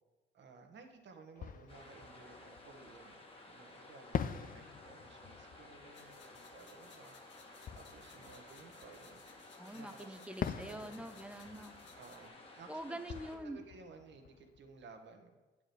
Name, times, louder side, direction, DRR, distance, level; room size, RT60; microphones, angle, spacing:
voice 1, 0.3-7.2 7.7-11.0 11.9-13.1 13.4-15.3, right 4 dB, 65° right, 5 dB, 1.4 m, -57 dB
Fireworks, 0.7-0.8 1.3-3.3 4.1-9.5 10.4-15.1, left 8 dB, 45° left, 0.5 m, -45 dB
sound 1, 1.7-13.4, left 2 dB, 30° left, 1.6 m, -55 dB
sound 2, 5.9-12.3, left 5 dB, 65° left, 1.3 m, -62 dB
voice 2, 9.6-11.7 12.7-13.6, right 1 dB, 5° right, 10 dB, 0.6 m, -45 dB
8.6 x 5.0 x 6.8 m, 1.2 s
cardioid pair, 90°, 20 cm